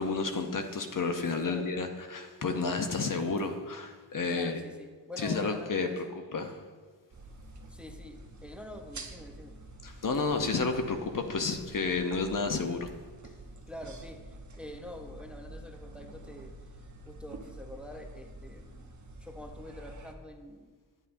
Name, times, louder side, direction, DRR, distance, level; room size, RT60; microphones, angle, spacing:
voice 1, 0.0-4.6 5.2-6.0 6.3-6.6 9.8-12.9, left 4 dB, 50° left, 6 dB, 0.7 m, -31 dB
voice 2, 4.3-6.1 7.7-9.5 13.7-16.5 17.1-20.7, left 1 dB, 5° right, 4 dB, 0.7 m, -46 dB
sound 1, 7.1-20.1, right 2 dB, 45° right, 0.9 m, -48 dB
9.9 x 7.4 x 2.6 m, 1.4 s
cardioid pair, 55°, 43 cm